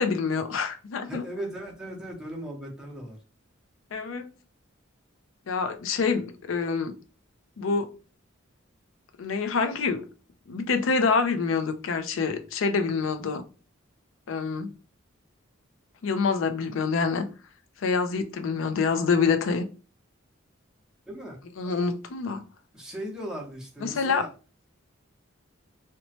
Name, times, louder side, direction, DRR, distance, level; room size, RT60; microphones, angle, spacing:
voice 1, 0.0-1.3 3.9-4.3 5.5-7.0 7.6-7.9 9.2-10.0 10.5-13.4 14.3-14.7 16.0-17.2 17.8-19.6 21.6-22.4 23.8-24.3, left 5 dB, 70° left, 0.4 m, -26 dB
voice 2, 1.1-3.2 21.1-21.4 21.6-21.7 22.7-24.3, equal, 5° right, 0.7 m, -37 dB
2.9 x 2.1 x 2.7 m
head